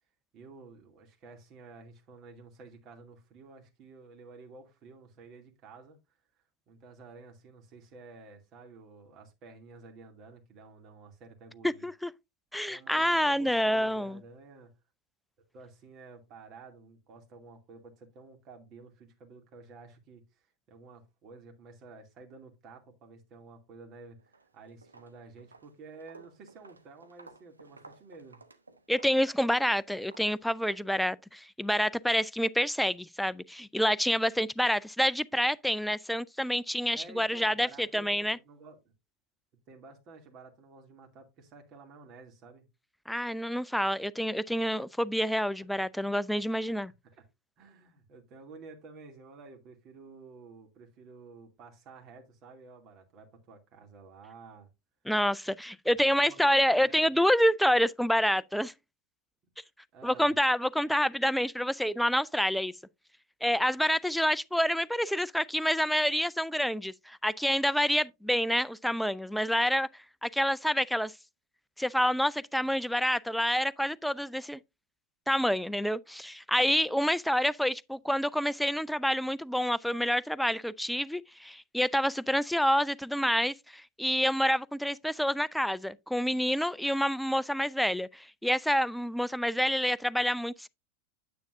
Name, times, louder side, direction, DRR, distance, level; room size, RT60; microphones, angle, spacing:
voice 1, 0.3-6.0 6.7-11.9 12.7-14.7 15.5-28.4 36.9-38.8 39.7-42.7 46.0-46.1 46.8-47.2 47.6-54.7 56.0-57.2 59.9-60.3, right 4 dB, 35° right, 2.6 m, -52 dB
voice 2, 11.6-12.1 12.5-14.2 28.9-38.4 43.1-46.9 55.1-58.7 60.0-62.7 63.4-69.9 70.2-71.1 71.8-74.6 75.3-90.7, equal, ahead, 0.4 m, -28 dB
Walk footsteps, 24.2-24.5 24.8-30.9, right 3 dB, 80° right, 1.1 m, -55 dB
9.4 x 8.4 x 2.6 m
figure-of-eight pair, 90°, 0 cm